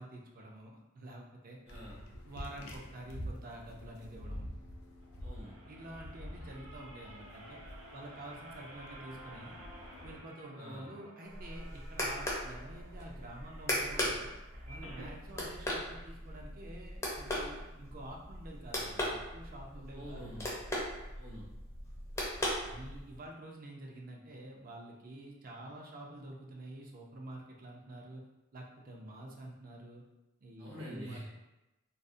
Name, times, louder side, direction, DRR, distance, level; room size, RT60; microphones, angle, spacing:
voice 1, 0.0-1.6 2.2-4.5 5.7-7.6 7.9-9.5 10.0-14.3 14.7-20.3 22.6-28.2 28.5-30.0 30.4-31.3, right 1 dB, 45° right, 0 dB, 0.4 m, -48 dB
sound 1, 1.7-10.2, equal, 90° left, 0.4 m, -47 dB
voice 2, 1.7-2.0 5.2-5.6 10.5-10.9 20.0-20.5 21.1-21.5 30.6-31.2, equal, 70° right, -7 dB, 1.0 m, -47 dB
sound 2, 5.0-15.2 15.7-15.8 16.0-16.1, right 1 dB, 90° right, 0.6 m, -54 dB
sound 3, 11.3-23.2, left 1 dB, 15° left, 0.4 m, -39 dB
2.4 x 2.0 x 2.5 m, 0.98 s
head